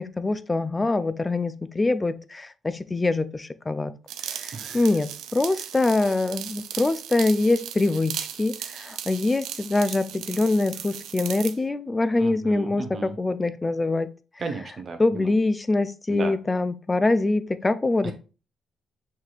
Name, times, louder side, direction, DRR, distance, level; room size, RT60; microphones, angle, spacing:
voice 1, 0.0-3.9 4.2-14.1 15.0-18.1, left 2 dB, 20° left, 0.4 m, -24 dB
sound 1, 4.1-11.6, right 10 dB, 85° right, 0.4 m, -37 dB
voice 2, 4.5-4.9 5.5-5.6 12.2-13.2 14.4-15.3 16.1-16.3 18.0-18.1, right 4 dB, 45° right, 0.8 m, -35 dB
5.7 x 3.2 x 2.3 m
cardioid pair, 90°, 0 cm